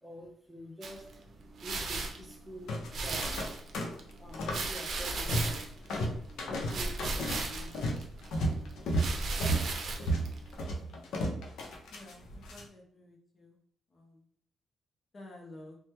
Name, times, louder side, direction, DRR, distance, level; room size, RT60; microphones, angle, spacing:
voice 1, 0.0-1.1 1.6-3.6 4.2-6.0 6.5-7.7 8.7-8.8, equal, 5° right, -1 dB, 0.8 m, -47 dB
sound 1, 0.8-10.8, right 3 dB, 55° right, 0.6 m, -38 dB
sound 2, 2.7-3.5 3.7-4.7 4.9-5.6 5.9-12.6, right 1 dB, 80° left, 0.6 m, -33 dB
voice 2, 12.5-13.6 13.9-14.2 15.1-15.8, left 1 dB, 35° left, 0 dB, 0.7 m, -51 dB
3.2 x 2.2 x 2.9 m, 0.66 s
cardioid pair, 115°, 0 cm